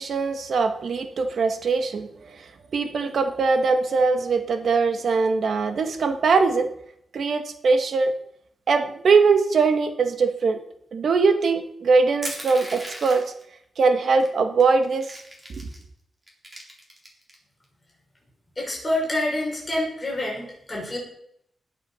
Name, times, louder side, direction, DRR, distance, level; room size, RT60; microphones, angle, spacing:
voice 1, 0.0-2.1 2.3-2.4 2.7-6.7 7.1-8.1 8.7-10.6 10.9-13.3 13.8-15.1 15.5-15.7, right 4 dB, 65° right, 7 dB, 1.7 m, -21 dB
Crushing, 12.2-13.4 14.2-14.3 14.6-15.8 16.3-17.4, right 1 dB, 20° right, 4.2 m, -37 dB
voice 2, 18.6-21.0, left 1 dB, 25° left, -3 dB, 6.1 m, -27 dB
19.5 x 7.2 x 5.8 m, 0.71 s
wide cardioid pair, 120°, 0 cm